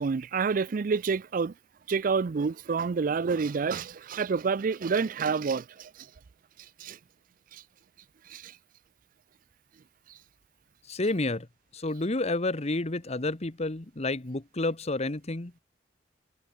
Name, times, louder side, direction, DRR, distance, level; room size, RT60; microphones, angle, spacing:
voice 1, 0.0-1.5 1.9-6.1 6.8-7.0 7.5-7.6 8.3-8.6, right 5 dB, 50° right, 0.4 m, -28 dB
voice 2, 10.9-11.5 11.7-15.5, left 2 dB, 35° left, 1.2 m, -30 dB
head